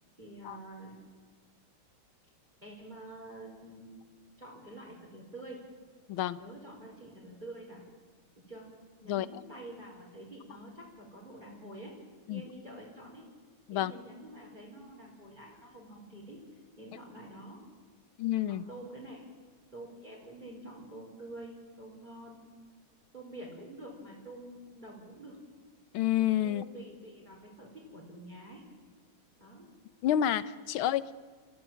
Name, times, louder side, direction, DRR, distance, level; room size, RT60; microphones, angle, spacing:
voice 1, 0.2-0.9 2.6-4.0 4.4-5.6 6.4-7.8 8.5-8.7 9.0-11.9 12.3-13.3 13.7-16.4 16.8-17.6 18.5-19.3 19.7-22.4 23.1-25.4 26.4-28.6 29.4-29.7, right 1 dB, 20° right, -3 dB, 4.6 m, -47 dB
voice 2, 18.2-18.6 25.9-26.6 30.0-31.1, left 11 dB, 85° left, 16 dB, 1.7 m, -29 dB
28.0 x 15.0 x 9.0 m, 1.6 s
omnidirectional pair, 2.2 m